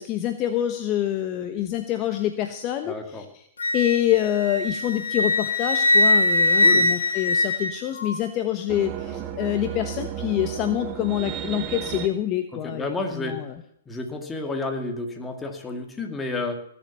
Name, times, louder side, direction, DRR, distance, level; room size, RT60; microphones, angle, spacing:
voice 1, 0.0-3.5 3.7-13.5, left 12 dB, 35° left, 7 dB, 1.1 m, -26 dB
voice 2, 2.8-3.3 6.6-6.9 12.5-13.4 13.9-16.6, left 2 dB, 10° left, 3 dB, 2.3 m, -31 dB
Wind instrument woodwind instrument, 3.6-8.2, left 2 dB, 85° left, 2.2 m, -21 dB
sound 1, 8.7-12.1, right 10 dB, 30° right, 1.5 m, -33 dB
19.0 x 7.2 x 7.1 m, 0.73 s
hypercardioid pair, 125°, 0 cm